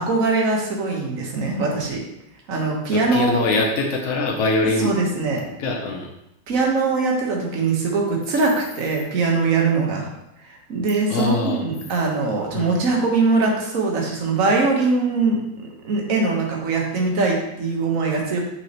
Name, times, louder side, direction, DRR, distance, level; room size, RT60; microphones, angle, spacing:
voice 1, 0.0-2.0 2.5-3.4 4.8-5.4 6.5-10.1 10.4-18.4, right 3 dB, 50° right, -1 dB, 1.5 m, -22 dB
voice 2, 2.9-4.9 5.5-6.1 11.1-11.6 12.5-12.8, left 3 dB, 55° left, 0 dB, 0.9 m, -23 dB
6.4 x 6.0 x 3.0 m, 0.86 s
omnidirectional pair, 2.0 m